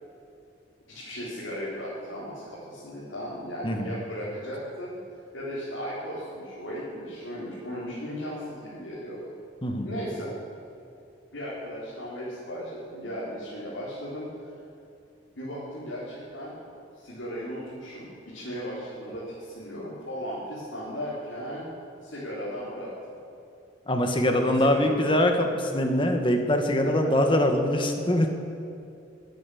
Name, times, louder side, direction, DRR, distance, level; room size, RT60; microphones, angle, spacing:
voice 1, 0.9-4.9 5.3-9.3 9.8-10.3 11.3-14.5 15.3-16.5 17.0-21.7 22.0-22.9 24.4-25.0 26.8-26.9, equal, 80° left, -9 dB, 4.3 m, -36 dB
voice 2, 23.9-28.4, left 1 dB, 25° left, 4 dB, 1.5 m, -23 dB
21.0 x 9.5 x 7.1 m, 2.7 s
head